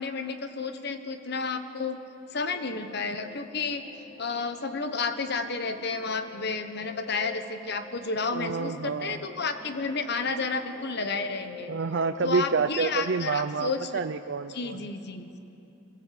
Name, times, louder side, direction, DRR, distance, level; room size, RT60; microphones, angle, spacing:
voice 1, 0.0-2.0 2.3-3.8 4.2-11.7 12.2-14.0 14.5-15.3, left 4 dB, 60° left, 8 dB, 1.2 m, -31 dB
sound 1, 2.2-12.3, left 4 dB, 30° left, 3.9 m, -48 dB
voice 2, 8.3-9.2 11.7-14.8, right 5 dB, 65° right, 9 dB, 0.5 m, -28 dB
22.0 x 16.5 x 7.8 m, 2.9 s
head